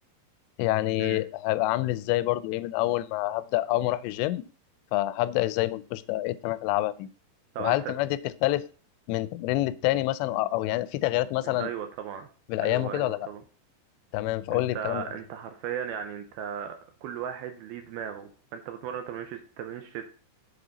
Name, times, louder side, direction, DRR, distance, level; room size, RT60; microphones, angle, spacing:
voice 1, 0.6-4.4 4.9-7.1 7.6-8.6 9.1-11.7 12.5-13.3 14.1-15.1, left 16 dB, 90° left, 16 dB, 2.8 m, -27 dB
voice 2, 7.5-7.9 11.4-12.3 12.6-13.4 14.5-20.1, right 8 dB, 80° right, 6 dB, 2.3 m, -36 dB
7.6 x 6.8 x 4.0 m, 0.40 s
omnidirectional pair, 4.9 m